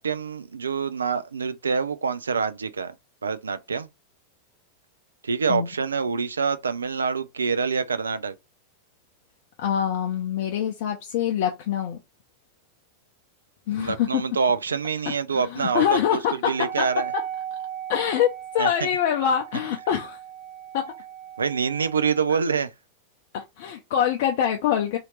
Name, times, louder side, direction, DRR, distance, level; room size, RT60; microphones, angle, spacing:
voice 1, 0.0-2.9 3.2-3.9 5.2-8.3 13.8-16.2 16.5-17.1 18.6-18.7 21.4-22.7, right 5 dB, 75° right, 0.3 m, -26 dB
voice 2, 9.6-12.0 13.7-14.2 15.1-17.3 17.9-20.2 20.7-21.0 23.3-25.0, left 9 dB, 50° left, 0.5 m, -25 dB
Wind instrument woodwind instrument, 16.5-22.3, right 10 dB, 45° right, 0.8 m, -37 dB
2.8 x 2.5 x 3.0 m
figure-of-eight pair, 90°, 0 cm